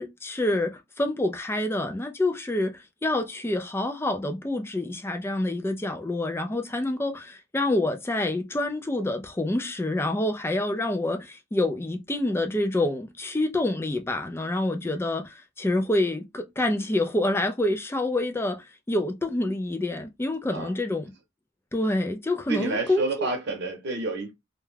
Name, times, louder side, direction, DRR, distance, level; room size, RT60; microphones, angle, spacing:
voice 1, 0.0-21.1 21.7-23.1, left 1 dB, 10° left, 0.3 m, -27 dB
voice 2, 22.5-24.3, right 2 dB, 50° right, 0.8 m, -29 dB
2.3 x 2.2 x 3.1 m
head